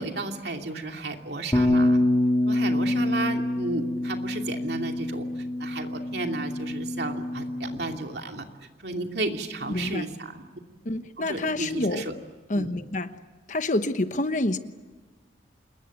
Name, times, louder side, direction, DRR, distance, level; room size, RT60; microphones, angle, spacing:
voice 1, 0.0-2.0 2.5-8.4 8.8-10.4 11.2-12.1 12.5-12.7, right 2 dB, 65° right, 2.7 m, -33 dB
Bass guitar, 1.5-7.8, left 1 dB, 20° left, 2.4 m, -26 dB
voice 2, 9.7-10.1 10.8-12.0 12.5-13.1 13.5-14.6, left 1 dB, 40° left, 1.2 m, -27 dB
27.5 x 22.0 x 9.1 m
head